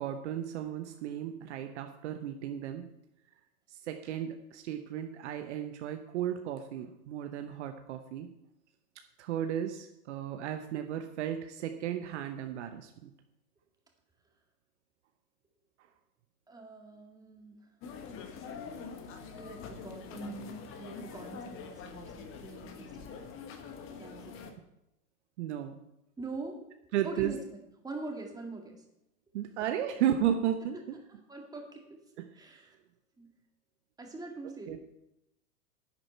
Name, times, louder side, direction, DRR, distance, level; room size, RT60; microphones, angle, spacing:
voice 1, 0.0-2.9 3.7-8.3 9.2-13.1 25.4-25.8 26.9-27.3 29.3-31.0 34.7-34.8, right 10 dB, 50° right, 6 dB, 0.9 m, -34 dB
voice 2, 16.5-17.5 19.3-23.3 24.0-24.5 26.2-26.7 27.0-27.6 27.8-28.9 31.1-32.0 32.3-32.8 33.2-33.3 34.0-34.8, right 3 dB, 10° right, 1 dB, 2.0 m, -44 dB
sound 1, 17.8-24.5, left 5 dB, 30° left, 1.4 m, -45 dB
10.5 x 9.0 x 4.5 m, 0.86 s
hypercardioid pair, 105°, 44 cm